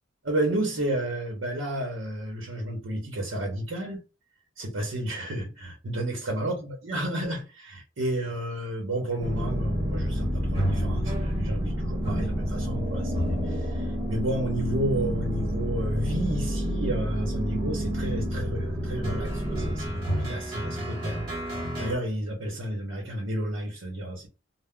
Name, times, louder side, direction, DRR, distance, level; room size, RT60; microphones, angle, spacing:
voice 1, 0.2-4.0 4.6-21.2 21.8-24.3, right 1 dB, 65° right, 0.8 m, -31 dB
sound 1, 9.2-22.0, equal, 25° right, 1.3 m, -29 dB
2.2 x 2.0 x 3.6 m
head